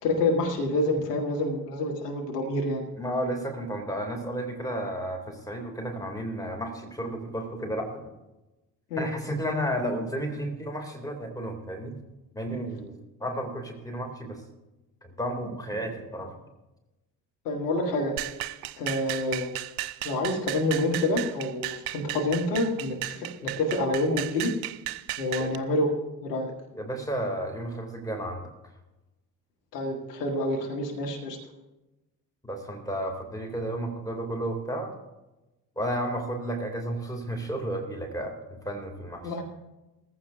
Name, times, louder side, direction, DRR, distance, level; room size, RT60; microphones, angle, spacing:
voice 1, 0.0-2.8 8.9-9.1 17.4-18.2 18.8-19.5 20.0-24.5 25.2-25.9 26.2-26.5 29.7-31.4 39.2-39.4, left 2 dB, 75° left, 1 dB, 1.7 m, -27 dB
voice 2, 3.0-8.0 9.0-12.0 12.3-14.4 15.0-16.3 25.4-25.5 26.7-28.5 32.4-34.9 35.8-38.3 38.6-39.3, right 1 dB, 5° left, 3 dB, 2.7 m, -32 dB
sound 1, 18.2-25.6, right 15 dB, 60° right, 0.6 m, -35 dB
19.5 x 14.5 x 2.6 m, 1.0 s
figure-of-eight pair, 50°, 48 cm